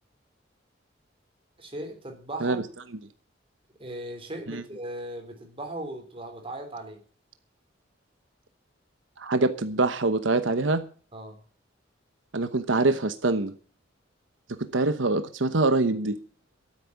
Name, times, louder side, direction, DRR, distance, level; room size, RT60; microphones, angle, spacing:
voice 1, 1.6-2.7 3.8-7.0 11.1-11.4, right 1 dB, 30° right, 4 dB, 3.8 m, -38 dB
voice 2, 9.2-10.8 12.3-13.5 14.6-16.2, right 3 dB, 90° right, 10 dB, 1.0 m, -24 dB
13.0 x 8.5 x 8.4 m, 0.42 s
head